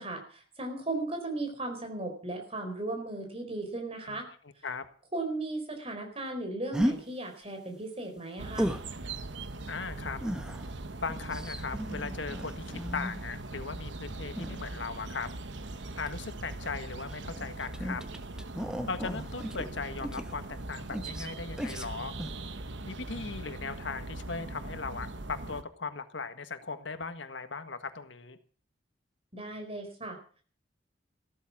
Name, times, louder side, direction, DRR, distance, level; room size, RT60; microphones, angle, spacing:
voice 1, 0.0-4.3 5.1-8.7 29.3-30.2, right 2 dB, 30° right, 5 dB, 4.5 m, -36 dB
sound 1, 6.7-7.0 8.5-8.9 10.2-13.3 14.3-15.1 16.0-16.2 17.0-20.6 20.9-21.3 21.6-21.9 22.2-22.4, equal, 5° right, 1.1 m, -35 dB
sound 2, 8.4-25.6, right 2 dB, 75° right, 1.1 m, -41 dB
voice 2, 9.7-10.2 11.0-15.3 16.0-18.0 18.9-22.1 22.8-28.4, left 4 dB, 80° left, 9 dB, 1.6 m, -38 dB
15.0 x 13.5 x 6.0 m, 0.43 s
head